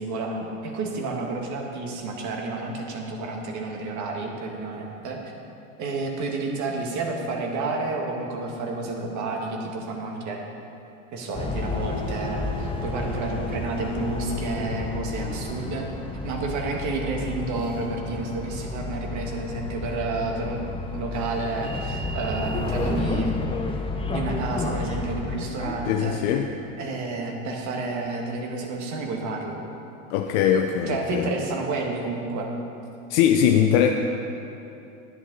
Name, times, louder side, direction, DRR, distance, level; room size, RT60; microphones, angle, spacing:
voice 1, 0.0-5.3 5.8-10.4 11.1-15.8 16.2-20.6 20.9-23.3 24.1-26.2 26.8-29.6 30.9-32.5, right 3 dB, 45° right, 1 dB, 1.9 m, -30 dB
sound 1, 11.3-25.9, left 2 dB, 15° left, 0.9 m, -31 dB
voice 2, 25.9-26.5 30.1-31.3 33.1-33.9, left 9 dB, 60° left, 3 dB, 0.7 m, -21 dB
10.5 x 10.0 x 4.0 m, 2.8 s
hypercardioid pair, 100°, 40 cm